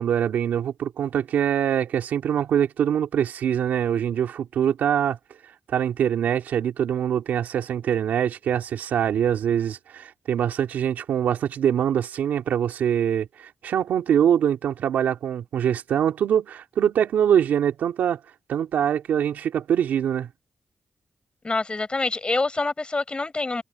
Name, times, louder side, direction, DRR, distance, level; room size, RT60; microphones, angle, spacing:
voice 1, 0.0-5.2 5.7-18.2 18.5-20.3, right 9 dB, 90° right, 3.0 m, -23 dB
voice 2, 21.4-23.6, left 3 dB, 35° left, 6.1 m, -26 dB
supercardioid pair, 45°, 3 cm